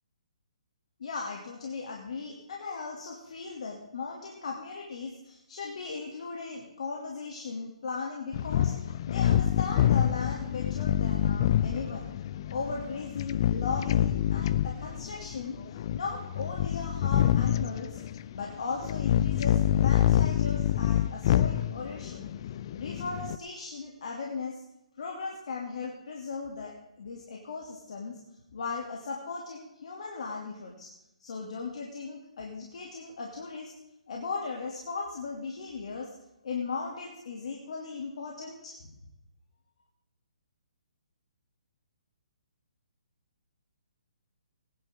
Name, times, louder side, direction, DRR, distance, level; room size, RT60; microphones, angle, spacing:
voice 1, 1.0-12.1 12.5-15.6 15.9-18.0 18.3-22.3 22.7-24.6 25.0-28.2 28.5-30.9 31.2-33.7 34.1-36.1 36.4-38.8, left 4 dB, 65° left, -1 dB, 2.9 m, -37 dB
sound 1, 8.3-23.4, left 11 dB, 40° left, 0.5 m, -27 dB
21.0 x 11.0 x 3.8 m, 0.87 s
hypercardioid pair, 145°, 4 cm